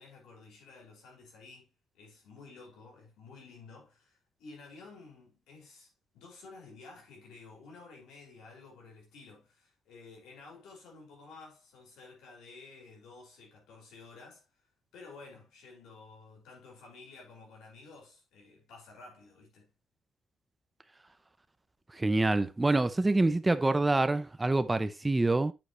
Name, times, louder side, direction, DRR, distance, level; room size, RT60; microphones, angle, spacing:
voice 1, 0.0-14.5 14.9-19.7, left 3 dB, 90° left, 5.6 m, -52 dB
voice 2, 21.9-25.5, right 2 dB, 15° right, 0.7 m, -26 dB
8.9 x 7.7 x 3.1 m
cardioid pair, 135°, 0 cm